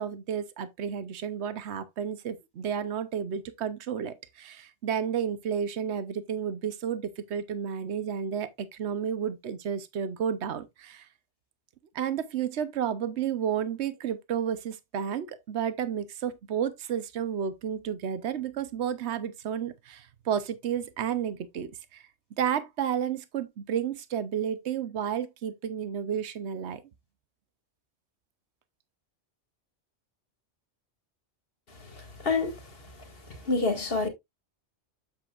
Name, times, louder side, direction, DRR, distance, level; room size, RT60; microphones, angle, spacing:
voice 1, 0.0-11.1 11.9-22.0 22.4-26.8, right 8 dB, 75° right, 1.1 m, -31 dB
voice 2, 31.7-32.9 33.3-34.1, left 3 dB, 55° left, 2.2 m, -29 dB
7.9 x 7.6 x 2.4 m
omnidirectional pair, 1.2 m